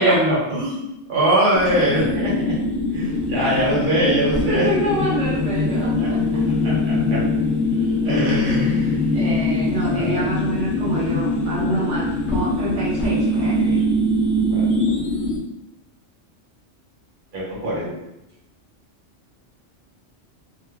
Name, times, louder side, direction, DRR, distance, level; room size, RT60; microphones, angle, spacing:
voice 1, 0.0-2.5 2.9-4.6 6.0-6.1 6.6-7.2 8.0-9.0 9.8-10.2 14.5-14.6 17.3-17.9, right 1 dB, 45° right, -6 dB, 1.1 m, -22 dB
sound 1, 1.5-15.4, left 1 dB, 60° left, 0.9 m, -23 dB
sound 2, 3.0-13.8, left 4 dB, 85° left, 0.9 m, -30 dB
voice 2, 4.5-6.2 8.7-13.8, right 1 dB, 75° right, -6 dB, 1.1 m, -27 dB
3.5 x 2.9 x 2.2 m, 0.89 s
omnidirectional pair, 1.3 m